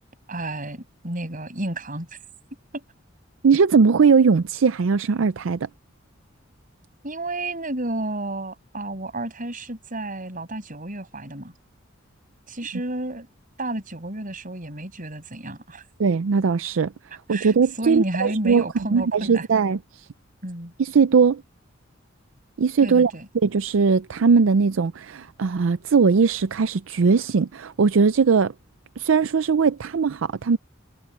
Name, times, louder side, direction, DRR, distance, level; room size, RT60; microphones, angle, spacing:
voice 1, 0.3-2.1 2.7-2.8 7.0-11.5 12.5-13.3 13.6-15.8 17.3-19.4 20.4-20.7 22.8-23.3, right 1 dB, 45° right, 6.5 m, -31 dB
voice 2, 3.4-5.7 16.0-16.9 17.3-18.6 18.9-20.1 20.8-21.4 22.6-23.1 23.4-28.5 29.0-30.6, right 5 dB, 75° right, 0.5 m, -19 dB
head